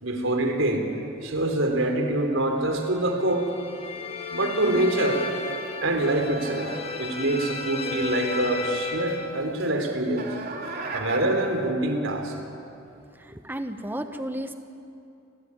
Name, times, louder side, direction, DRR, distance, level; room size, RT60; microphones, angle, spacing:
voice 1, 0.0-0.9 1.2-3.5 4.3-5.2 5.8-6.7 7.0-10.3 10.9-12.4, right 1 dB, 80° right, 5 dB, 3.6 m, -25 dB
sound 1, 3.2-9.4, left 3 dB, 30° left, 2.3 m, -33 dB
sound 2, 5.5-11.6, right 3 dB, 50° right, 3.8 m, -40 dB
voice 2, 13.2-14.5, right 1 dB, 10° right, 7 dB, 1.1 m, -33 dB
28.5 x 18.5 x 9.9 m, 2.6 s
head